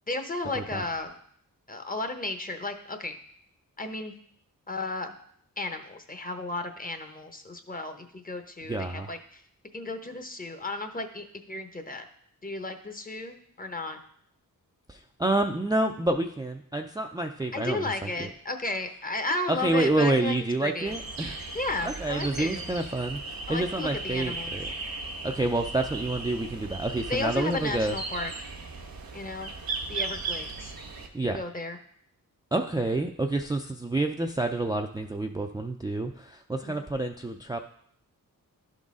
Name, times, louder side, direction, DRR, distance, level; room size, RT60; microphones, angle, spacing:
voice 1, 0.1-1.2 1.7-3.2 3.8-4.1 4.7-5.1 5.6-9.4 9.7-12.1 12.4-14.0 17.5-20.3 20.6-21.0 21.5-22.7 23.5-24.5 27.1-28.3 29.1-29.5 29.9-30.7 31.2-31.8 36.6-36.8, left 2 dB, 25° left, 6 dB, 0.8 m, -34 dB
voice 2, 8.7-9.1 14.9-18.3 19.5-21.4 21.8-24.7 25.2-27.9 31.1-31.4 32.5-37.6, right 2 dB, 10° right, 3 dB, 0.4 m, -28 dB
sound 1, 20.8-31.1, right 3 dB, 80° right, 1.1 m, -37 dB
11.5 x 4.0 x 3.7 m, 0.65 s
wide cardioid pair, 65°, 35 cm